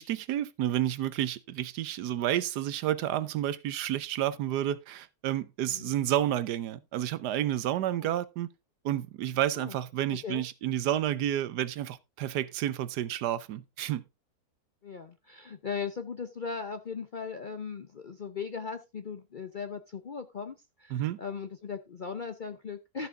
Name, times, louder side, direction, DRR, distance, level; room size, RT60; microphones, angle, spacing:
voice 1, 0.0-8.5 8.8-14.0 20.9-21.2, right 12 dB, 85° right, 1.3 m, -30 dB
voice 2, 14.8-23.1, left 6 dB, 55° left, 0.5 m, -38 dB
13.5 x 6.0 x 3.7 m
omnidirectional pair, 1.7 m